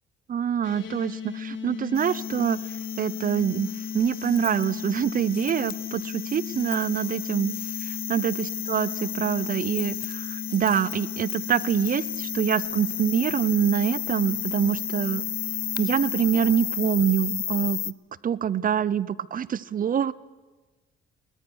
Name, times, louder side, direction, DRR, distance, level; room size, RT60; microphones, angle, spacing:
voice 1, 0.3-2.6 3.0-7.5 7.8-15.2 15.8-17.9 18.2-20.1, right 8 dB, 45° right, 21 dB, 0.7 m, -25 dB
sound 1, 0.6-16.9, left 6 dB, 75° left, 4.2 m, -36 dB
sound 2, 1.9-17.9, left 9 dB, 50° left, 0.7 m, -33 dB
21.5 x 18.5 x 6.4 m, 1.3 s
cardioid pair, 90°, 20 cm